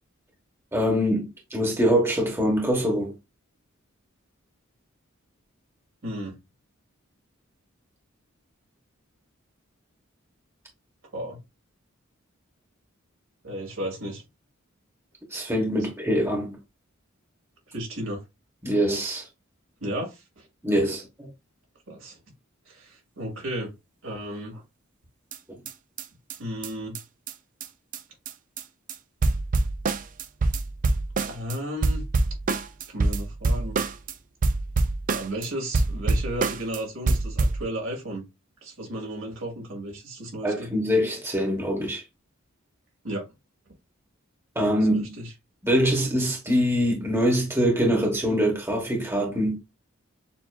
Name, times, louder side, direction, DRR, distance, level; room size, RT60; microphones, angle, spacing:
voice 1, 0.7-3.1 15.3-16.6 18.6-19.2 20.6-21.3 40.4-42.0 44.5-45.1 45.6-49.6, equal, 10° right, 1.1 m, -24 dB
voice 2, 6.0-6.3 11.1-11.4 13.4-14.2 17.7-18.2 19.8-20.5 21.9-22.2 22.7-23.7 24.0-24.6 26.4-27.0 31.2-32.0 32.9-33.8 35.1-38.2 38.6-40.7 43.0-43.3 44.9-45.3, right 1 dB, 70° right, 2.2 m, -34 dB
sound 1, 25.3-25.4 25.7-25.8 26.0-26.1 26.3-26.4 26.6-26.7 26.9-27.0 27.3-27.4 27.6-27.7 27.9-28.0 28.2-28.6 28.9-29.0 29.2-31.6 31.8-34.1 34.4-35.5 35.7-36.8 37.1-37.6, right 3 dB, 40° right, 0.4 m, -25 dB
6.9 x 2.7 x 2.3 m
head